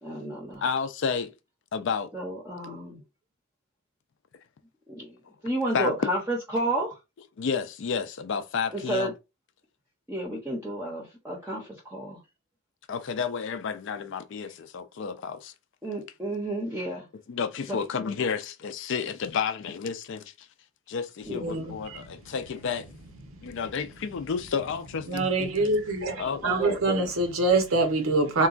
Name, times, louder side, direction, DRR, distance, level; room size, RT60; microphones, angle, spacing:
voice 1, 0.0-0.7 2.1-3.0 4.9-5.2 5.4-7.0 8.7-9.1 10.1-12.2 15.8-17.1 17.6-17.8 21.3-21.7 26.4-27.1, right 1 dB, 10° right, 0.6 m, -31 dB
voice 2, 0.6-1.3 1.7-2.1 5.7-5.9 7.4-9.1 12.9-15.5 17.3-20.2 20.9-22.9 23.4-25.7 26.2-26.4, left 6 dB, 65° left, 0.4 m, -31 dB
voice 3, 21.3-22.2 23.3-23.6 25.1-28.5, right 2 dB, 85° right, 0.8 m, -25 dB
3.7 x 2.2 x 2.4 m
head